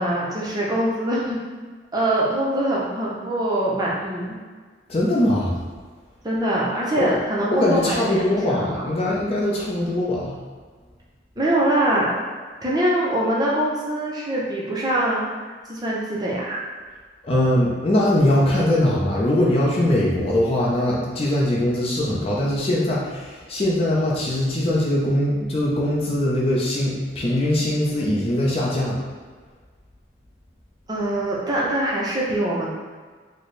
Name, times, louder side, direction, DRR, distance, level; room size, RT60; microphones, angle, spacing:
voice 1, 0.0-1.4 1.9-4.4 6.2-8.7 11.4-12.2 12.6-16.6 30.9-32.7, right 1 dB, 20° right, -5 dB, 0.6 m, -23 dB
voice 2, 4.9-5.6 7.0-7.1 7.5-10.4 17.2-29.0, left 1 dB, 30° left, -5 dB, 0.5 m, -21 dB
4.2 x 2.1 x 3.1 m, 1.5 s
head